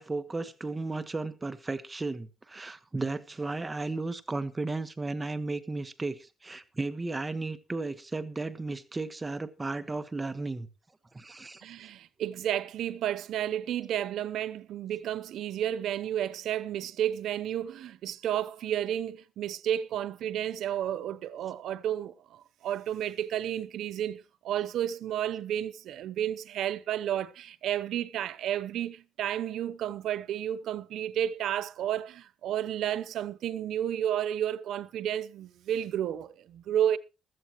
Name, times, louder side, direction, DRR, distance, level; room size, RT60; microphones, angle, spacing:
voice 1, 0.0-10.7 11.1-11.6, right 3 dB, 20° right, 1.3 m, -34 dB
voice 2, 11.6-37.0, right 10 dB, 75° right, 0.8 m, -32 dB
15.5 x 13.5 x 3.0 m
cardioid pair, 90°, 0 cm